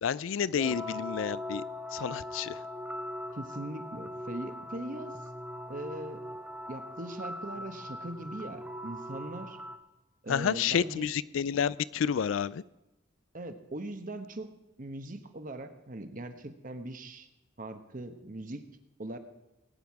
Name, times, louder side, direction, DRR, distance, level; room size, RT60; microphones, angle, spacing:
voice 1, 0.0-1.6 1.9-2.6 10.3-12.6, left 7 dB, 85° left, 20 dB, 0.4 m, -30 dB
sound 1, 0.6-9.8, left 1 dB, 5° right, 0.7 m, -40 dB
voice 2, 3.3-5.2 5.7-6.3 6.7-9.6 10.2-11.1 13.3-14.5 14.8-17.3 17.6-18.6 19.0-19.2, right 1 dB, 45° right, 8 dB, 1.1 m, -40 dB
19.0 x 9.3 x 4.7 m, 1.0 s
head